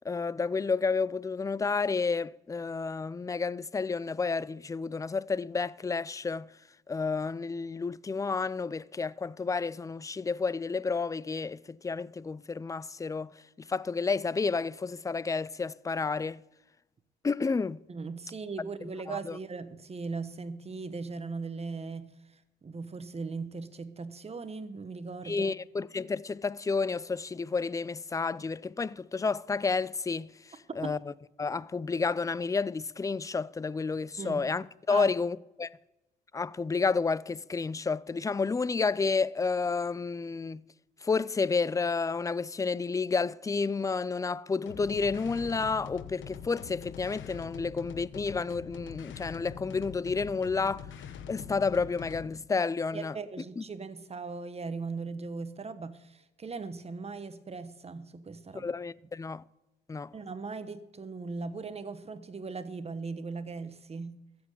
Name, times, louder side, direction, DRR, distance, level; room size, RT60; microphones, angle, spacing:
voice 1, 0.1-6.5 6.9-13.3 13.7-16.4 17.2-17.8 19.1-19.4 25.3-30.3 30.8-31.0 31.4-35.7 36.3-40.6 41.0-50.9 51.3-53.2 53.6-53.7 58.5-59.4 59.9-60.1, left 4 dB, 15° left, 0.4 m, -30 dB
voice 2, 17.9-22.2 22.6-25.5 30.7-31.0 34.2-34.5 34.9-35.1 52.9-58.7 60.1-64.2, right 4 dB, 30° right, 1.1 m, -39 dB
sound 1, 44.7-52.4, left 8 dB, 75° left, 1.0 m, -44 dB
14.0 x 7.9 x 8.1 m
cardioid pair, 90°, 20 cm